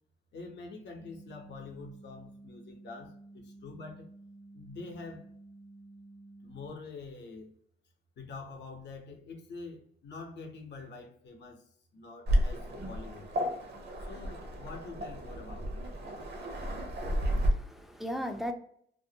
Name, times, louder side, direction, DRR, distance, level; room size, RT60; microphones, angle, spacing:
voice 1, 0.3-4.1 4.5-5.3 6.4-7.5 8.2-11.6 11.9-13.3 14.0-15.8, left 3 dB, 60° left, 3 dB, 0.7 m, -46 dB
sound 1, 1.0-6.7, right 2 dB, 80° right, 1.1 m, -52 dB
Waves surf, 12.3-17.5, equal, 55° right, 0.7 m, -32 dB
voice 2, 16.9-18.5, equal, ahead, 5 dB, 0.4 m, -38 dB
2.6 x 2.0 x 2.7 m, 0.64 s
cardioid pair, 90°, 20 cm